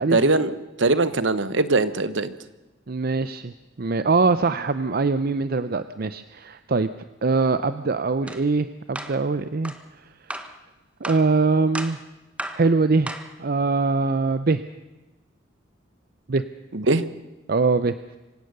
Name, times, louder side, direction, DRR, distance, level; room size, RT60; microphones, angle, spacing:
voice 1, 0.1-2.3 16.7-17.0, right 3 dB, 65° right, 14 dB, 1.1 m, -21 dB
voice 2, 2.9-3.5 3.8-6.9 7.2-9.7 11.0-12.0 12.5-14.6 16.3-16.4 17.5-18.0, right 3 dB, 50° right, 12 dB, 0.6 m, -22 dB
sound 1, 8.3-8.4 9.0-9.2 9.6-9.8 10.3-10.6 11.0-11.3 11.7-12.0 12.4-12.7 13.1-13.3, right 1 dB, 5° right, 1.3 m, -34 dB
26.0 x 16.5 x 6.7 m, 1.1 s
head